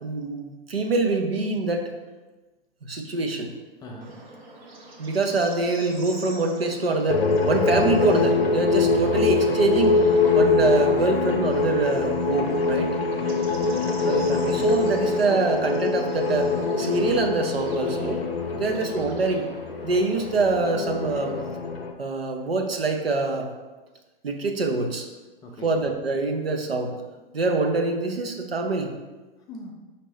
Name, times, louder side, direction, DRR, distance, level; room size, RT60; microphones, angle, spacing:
voice 1, 0.0-1.9 2.8-3.5 5.0-10.0 10.3-12.9 14.1-18.2 18.6-19.5 19.8-21.4 22.0-23.5 24.2-25.1 25.6-26.9 27.3-28.9, right 3 dB, 80° right, 4 dB, 0.7 m, -25 dB
voice 2, 3.8-4.2 13.1-14.0 18.5-18.8 25.4-25.7 29.5-29.7, left 1 dB, 15° left, 0 dB, 0.4 m, -41 dB
Bird / Insect, 4.0-21.4, right 2 dB, 50° right, 1.0 m, -45 dB
sound 1, 7.1-21.9, left 4 dB, 80° left, 0.5 m, -24 dB
5.0 x 2.8 x 3.2 m, 1.2 s
figure-of-eight pair, 100°, 30 cm